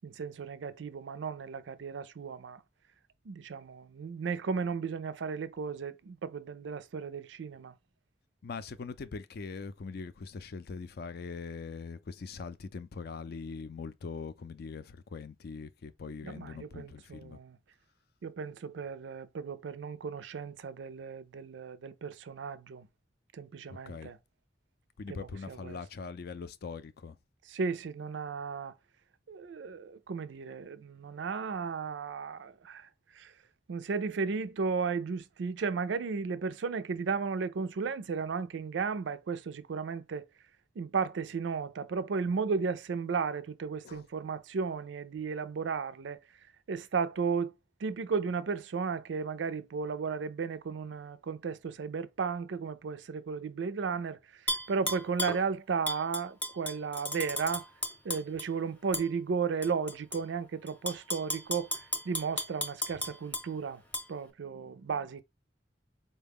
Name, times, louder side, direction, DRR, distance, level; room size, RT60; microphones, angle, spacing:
voice 1, 0.0-2.6 3.3-7.7 16.2-17.6 18.2-22.9 23.3-24.2 25.1-25.8 27.5-28.7 29.3-32.9 33.2-33.3 33.7-40.3 40.8-46.2 46.7-47.5 47.8-57.6 58.0-61.7 62.1-63.8 64.1-65.2, right 5 dB, 85° right, 0.4 m, -34 dB
voice 2, 8.4-17.4 23.7-24.1 25.0-27.2 43.8-44.0, left 4 dB, 60° left, 0.4 m, -42 dB
Tap / Glass, 54.5-55.4 55.9-58.5 58.9-59.1 59.6-60.2 60.7-63.5 63.9-64.0, left 1 dB, 10° left, 0.7 m, -34 dB
4.1 x 2.2 x 3.5 m
head